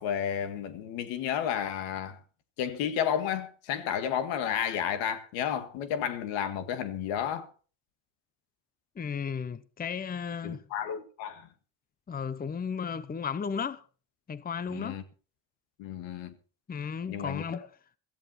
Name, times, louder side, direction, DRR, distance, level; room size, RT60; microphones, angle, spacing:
voice 1, 0.0-2.2 2.6-7.5 10.4-11.5 14.7-15.0 15.8-16.3 17.1-17.6, left 9 dB, 85° left, 1.9 m, -32 dB
voice 2, 9.0-10.6 12.1-13.8 14.3-15.0 16.7-17.7, left 6 dB, 20° left, 0.8 m, -34 dB
16.0 x 14.0 x 4.2 m
cardioid pair, 95°, 44 cm